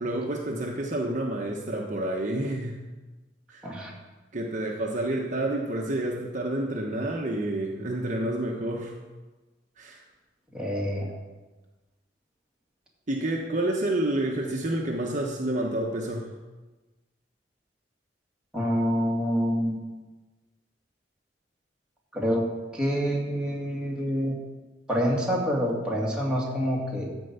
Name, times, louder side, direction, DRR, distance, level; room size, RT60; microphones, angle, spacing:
voice 1, 0.0-2.8 3.5-3.7 4.3-8.9 9.8-10.0 13.1-16.3, right 1 dB, 40° right, 0 dB, 1.1 m, -29 dB
voice 2, 10.5-11.1 18.5-19.8 22.1-22.5 22.7-24.4 24.9-27.1, equal, 5° right, -4 dB, 2.2 m, -27 dB
13.5 x 4.7 x 8.1 m, 1.2 s
head